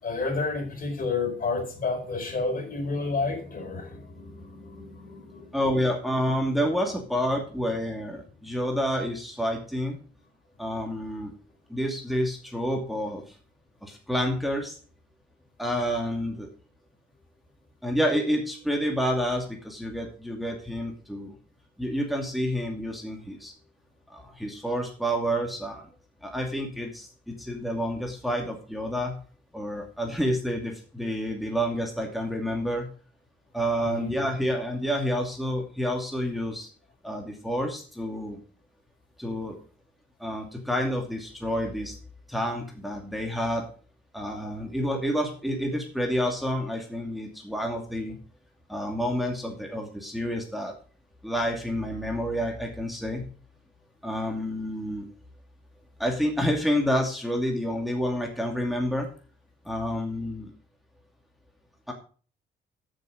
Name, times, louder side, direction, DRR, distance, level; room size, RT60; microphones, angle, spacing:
voice 1, 0.0-5.6 8.5-8.6 33.8-34.1, left 3 dB, 45° left, 5 dB, 4.3 m, -31 dB
voice 2, 5.5-10.0 10.6-11.3 11.7-13.2 13.8-14.8 15.6-16.5 17.8-21.3 21.8-23.5 24.1-25.9 26.2-29.2 29.5-32.9 33.5-36.7 37.0-38.4 39.2-39.6 40.2-41.9 42.3-43.6 44.1-48.2 48.7-50.7 51.2-53.3 54.0-55.1 56.0-59.1 59.6-60.5 61.9-62.0, equal, ahead, 1 dB, 2.6 m, -29 dB
13.5 x 6.8 x 5.1 m, 0.40 s
cardioid pair, 90°, 20 cm